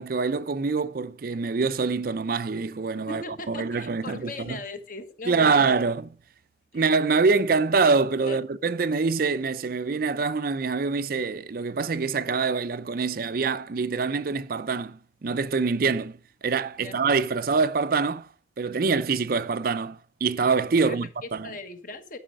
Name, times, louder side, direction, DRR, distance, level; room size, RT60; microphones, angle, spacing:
voice 1, 0.0-4.6 5.3-6.0 6.7-16.2 16.4-18.3 18.6-21.5, right 4 dB, 50° right, 0.4 m, -25 dB
voice 2, 3.1-5.7 6.7-6.8 8.3-8.4 16.8-17.0 20.8-22.2, left 2 dB, 45° left, 1.3 m, -38 dB
11.5 x 5.6 x 6.3 m
head